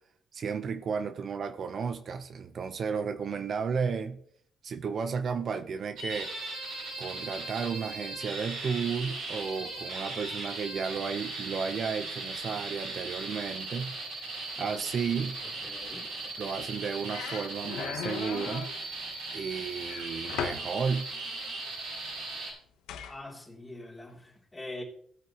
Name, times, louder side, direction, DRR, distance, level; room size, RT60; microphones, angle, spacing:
voice 1, 0.3-4.2 4.6-6.3 7.0-14.0 14.6-15.4 16.4-18.7 19.3-21.1, right 6 dB, 55° right, 0.7 m, -33 dB
sound 1, 6.0-22.5, right 2 dB, 85° right, 5.9 m, -38 dB
voice 2, 15.6-16.1 23.1-24.8, left 1 dB, 15° left, 2.9 m, -43 dB
sound 2, 16.6-16.8 17.1-18.8 19.9-20.7 22.9-23.2, left 8 dB, 90° left, 1.0 m, -37 dB
17.0 x 8.6 x 2.9 m
cardioid pair, 90°, 0 cm